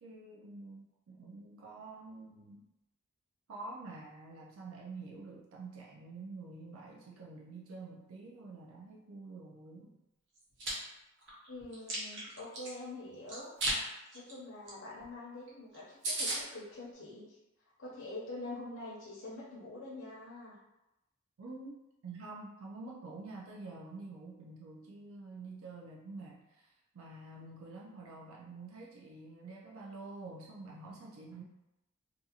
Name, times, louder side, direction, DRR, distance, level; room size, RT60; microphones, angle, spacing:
voice 1, 0.0-2.6 3.5-10.0 21.4-31.4, right 3 dB, 75° right, -3 dB, 0.4 m, -48 dB
Chewing mastication, 10.4-10.7 11.2-12.7 13.3-13.8 14.1-14.3 14.7-14.8 15.0-15.1 15.5-15.6 15.7-15.8 16.0-16.4, right 1 dB, 55° right, 0.8 m, -35 dB
voice 2, 11.5-13.5 14.1-17.4 17.8-20.6, left 2 dB, 60° left, -7 dB, 0.6 m, -45 dB
2.5 x 2.4 x 2.7 m, 0.94 s
head